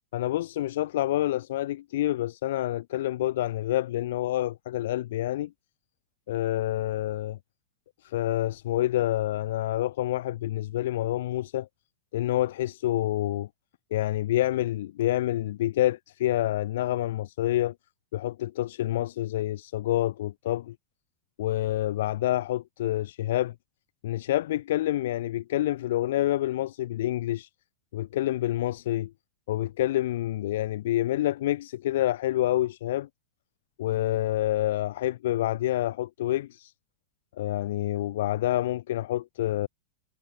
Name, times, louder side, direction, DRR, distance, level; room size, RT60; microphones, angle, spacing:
voice 1, 0.1-5.5 6.3-7.4 8.0-11.7 12.1-13.5 13.9-17.7 18.1-20.8 21.4-23.5 24.0-27.5 27.9-29.1 29.5-33.1 33.8-36.7 37.4-39.7, left 14 dB, 55° left, 5.5 m, -27 dB
figure-of-eight pair, 90°, 0 cm